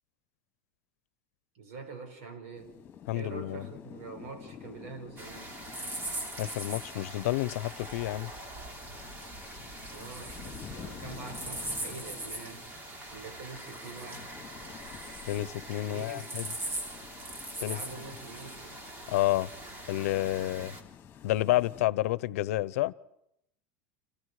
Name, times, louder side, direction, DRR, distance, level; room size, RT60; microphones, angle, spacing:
voice 1, 1.5-2.8 3.1-5.6 9.9-12.7 13.1-14.3 15.9-16.4 17.6-18.8 20.4-20.7, right 4 dB, 75° right, 5.9 m, -45 dB
sound 1, 2.6-21.9, left 8 dB, 25° left, 2.7 m, -50 dB
voice 2, 3.1-3.7 6.4-8.3 15.3-16.5 17.6-17.8 19.1-19.5 19.9-20.7 21.2-22.9, left 16 dB, 85° left, 0.8 m, -29 dB
sound 2, 5.2-20.8, right 1 dB, 25° right, 3.0 m, -41 dB
30.0 x 27.0 x 4.9 m
supercardioid pair, 155°, 8 cm